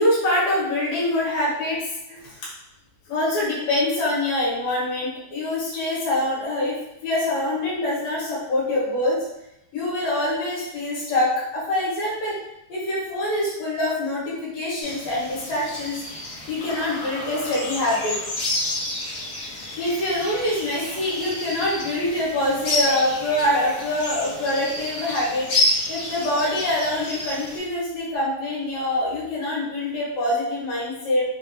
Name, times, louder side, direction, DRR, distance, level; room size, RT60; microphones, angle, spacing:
voice 1, 0.0-2.3 3.1-9.2 9.7-12.3 12.7-16.0 16.5-18.2 19.8-25.5 25.9-31.2, left 1 dB, 85° left, -7 dB, 3.2 m, -25 dB
sound 1, 14.8-27.6, left 1 dB, 55° left, 1.3 m, -30 dB
6.4 x 2.2 x 3.0 m, 0.82 s
omnidirectional pair, 3.8 m